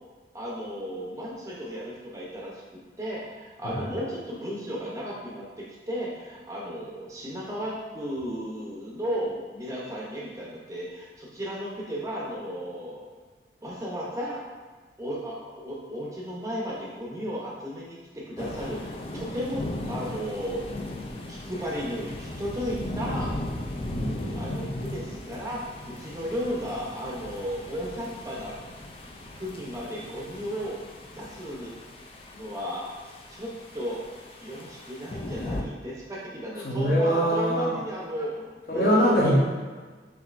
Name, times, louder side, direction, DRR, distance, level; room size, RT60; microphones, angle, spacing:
voice 1, 0.3-2.6 3.0-13.1 13.6-14.5 15.0-20.7 21.3-23.3 24.3-28.5 29.3-30.8 31.2-31.9 32.3-32.9 33.3-34.1 34.4-39.3, equal, 20° right, -5 dB, 0.7 m, -34 dB
sound 1, 18.4-35.6, left 1 dB, 30° left, 0.3 m, -37 dB
voice 2, 23.9-24.5 36.6-37.7 38.7-39.3, equal, 55° left, -5 dB, 1.0 m, -24 dB
5.2 x 2.8 x 2.5 m, 1.4 s
head